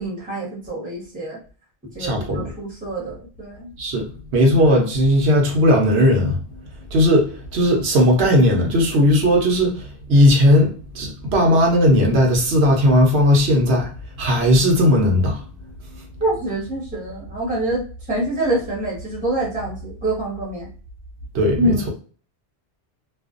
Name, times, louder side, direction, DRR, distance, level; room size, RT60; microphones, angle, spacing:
voice 1, 0.0-1.4 1.9-3.7 16.2-17.8 18.1-20.7 21.6-21.9, right 1 dB, 10° right, 0.9 m, -25 dB
voice 2, 2.0-2.5 3.8-6.4 6.9-13.9 14.2-15.4 21.3-21.7, equal, 80° right, 1.0 m, -17 dB
2.4 x 2.3 x 2.4 m
omnidirectional pair, 1.1 m